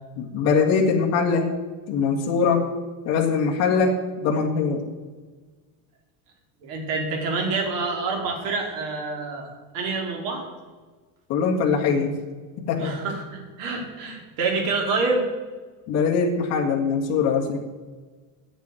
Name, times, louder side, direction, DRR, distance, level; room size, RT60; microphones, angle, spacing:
voice 1, 0.2-1.5 1.9-2.6 3.0-4.0 4.2-4.8 11.3-12.1 12.7-12.9 15.9-17.6, left 5 dB, 40° left, -1 dB, 1.8 m, -22 dB
voice 2, 6.6-9.5 9.7-10.5 12.8-15.2, right 3 dB, 55° right, 2 dB, 3.0 m, -27 dB
9.1 x 7.3 x 9.1 m, 1.4 s
cardioid pair, 170°, 40 cm